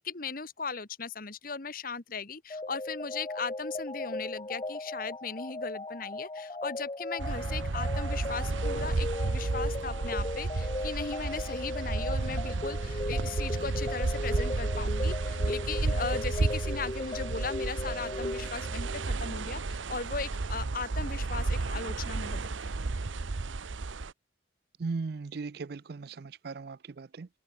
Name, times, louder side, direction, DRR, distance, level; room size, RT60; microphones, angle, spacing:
voice 1, 0.0-22.6, left 4 dB, 50° left, 1.4 m, -38 dB
sound 1, 2.5-19.1, left 2 dB, 25° left, 0.7 m, -37 dB
sound 2, 7.2-24.1, right 3 dB, 90° right, 0.8 m, -32 dB
voice 2, 24.8-27.3, right 4 dB, 55° right, 0.5 m, -37 dB
head